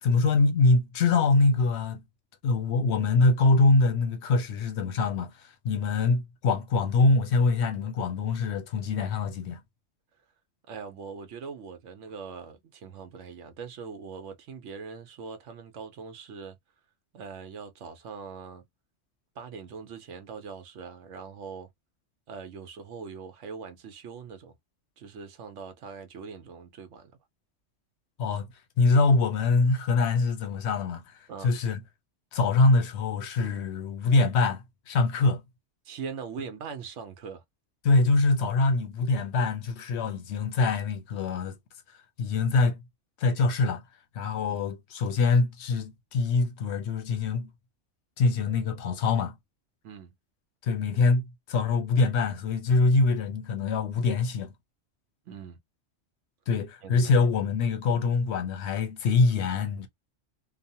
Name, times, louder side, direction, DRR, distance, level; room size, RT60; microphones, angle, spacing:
voice 1, 0.0-2.0 2.4-9.6 28.2-28.5 28.8-31.0 31.4-31.8 32.3-35.4 37.8-41.6 42.2-42.8 43.2-43.8 44.1-47.5 48.2-49.3 50.6-54.5 56.5-59.9, left 3 dB, 65° left, 0.8 m, -24 dB
voice 2, 10.7-16.6 17.1-18.6 19.4-21.7 22.3-24.6 25.0-27.1 31.3-31.5 35.8-37.4 44.5-44.6 49.8-50.1 55.3-55.6 56.8-57.1, right 5 dB, 75° right, 1.0 m, -41 dB
3.0 x 2.0 x 2.7 m
omnidirectional pair, 1.3 m